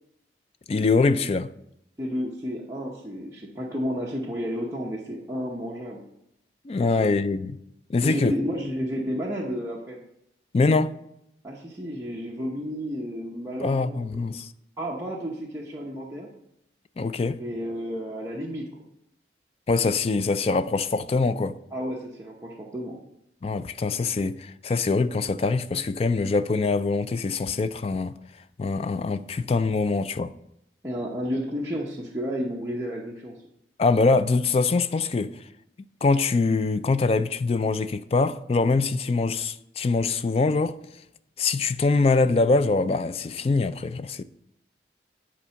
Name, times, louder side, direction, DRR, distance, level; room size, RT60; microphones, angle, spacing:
voice 1, 0.7-1.5 6.6-7.5 7.9-8.4 10.5-10.9 13.6-14.5 17.0-17.4 19.7-21.6 23.4-28.1 28.6-30.3 33.8-35.3 36.0-40.8 41.4-44.2, left 3 dB, 35° left, 0.3 m, -23 dB
voice 2, 2.0-6.0 6.8-7.1 8.0-10.0 11.4-14.3 14.8-16.3 17.4-18.7 21.7-23.0 30.8-33.4, equal, 15° right, 0.8 m, -32 dB
9.9 x 4.2 x 5.7 m
head